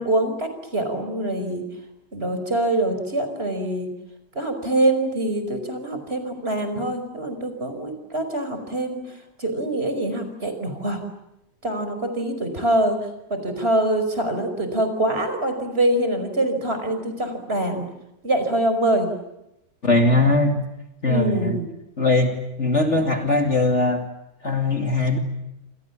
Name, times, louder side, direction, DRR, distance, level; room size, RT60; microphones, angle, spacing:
voice 1, 0.0-1.6 2.1-3.9 4.3-9.0 9.4-11.0 11.6-13.0 13.3-17.8 18.2-19.1 21.1-21.7, right 1 dB, 30° right, 7 dB, 5.6 m, -24 dB
voice 2, 19.8-20.6 21.0-21.6 22.0-24.0 24.4-25.2, left 2 dB, 40° left, 4 dB, 2.8 m, -20 dB
29.0 x 27.5 x 7.4 m, 0.89 s
omnidirectional pair, 2.0 m